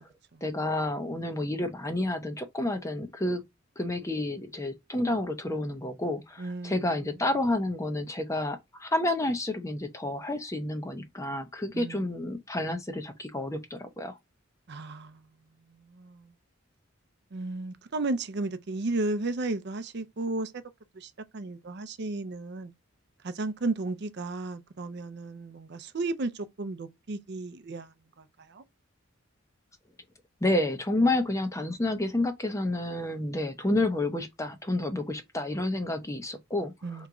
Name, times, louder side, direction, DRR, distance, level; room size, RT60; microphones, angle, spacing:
voice 1, 0.4-3.4 3.8-14.2 30.4-37.1, left 1 dB, 15° left, 0.6 m, -30 dB
voice 2, 6.4-6.9 11.7-12.1 14.7-15.2 15.9-16.3 17.3-20.5 21.0-22.7 23.2-28.2 28.5-28.6 36.8-37.1, right 2 dB, 55° right, 0.5 m, -34 dB
3.5 x 3.0 x 3.7 m
head